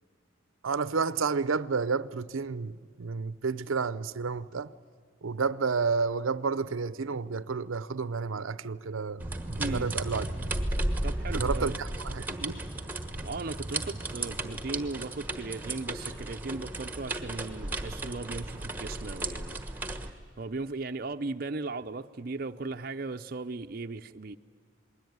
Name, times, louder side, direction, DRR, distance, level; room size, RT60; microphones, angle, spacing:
voice 1, 0.6-4.7 5.2-10.3 11.3-12.6, right 5 dB, 85° right, 0.7 m, -31 dB
sound 1, 9.2-20.1, right 2 dB, 10° right, 1.3 m, -34 dB
voice 2, 9.6-9.9 11.0-11.8 13.1-24.4, right 3 dB, 45° right, 0.6 m, -37 dB
28.0 x 21.0 x 9.4 m
head